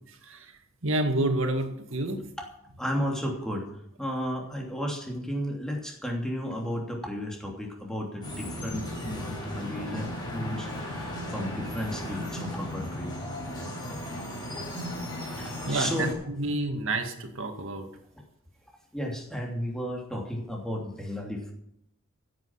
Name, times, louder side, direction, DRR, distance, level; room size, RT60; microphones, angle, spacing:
voice 1, 0.8-2.2 15.2-17.9, right 2 dB, 65° right, 5 dB, 2.1 m, -29 dB
voice 2, 2.8-3.6 4.0-13.1 15.4-16.1 18.9-21.5, equal, 5° left, 0 dB, 3.0 m, -33 dB
sound 1, 8.2-16.1, left 1 dB, 20° left, 5.2 m, -36 dB
15.5 x 9.0 x 5.9 m, 0.77 s
head